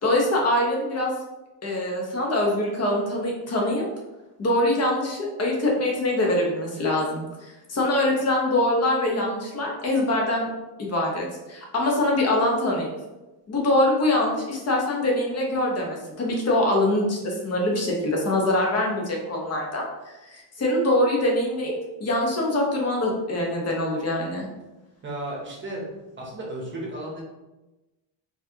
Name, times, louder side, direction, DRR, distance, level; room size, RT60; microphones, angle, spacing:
voice 1, 0.0-1.1 1.6-3.8 4.4-10.5 10.8-12.9 13.5-21.7 22.0-24.5, left 1 dB, 35° left, -2 dB, 1.0 m, -24 dB
voice 2, 25.0-25.9 26.2-27.2, right 1 dB, 25° right, -3 dB, 0.9 m, -34 dB
4.5 x 2.8 x 2.8 m, 1.1 s
cardioid pair, 155°, 44 cm